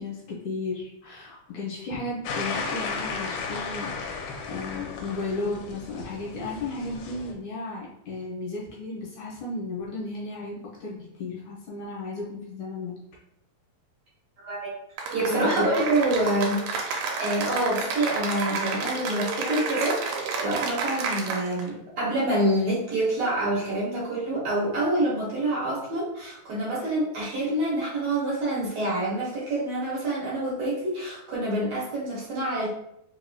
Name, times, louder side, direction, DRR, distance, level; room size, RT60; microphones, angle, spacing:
voice 1, 0.0-13.0 15.3-15.7, left 3 dB, 70° left, -5 dB, 2.1 m, -34 dB
sound 1, 2.3-7.3, left 4 dB, 85° left, 2.1 m, -34 dB
Cheering / Applause, 15.0-21.7, right 4 dB, 80° right, 2.0 m, -30 dB
voice 2, 15.1-32.7, right 1 dB, 65° right, -6 dB, 1.9 m, -27 dB
4.8 x 2.8 x 2.3 m, 0.77 s
omnidirectional pair, 3.7 m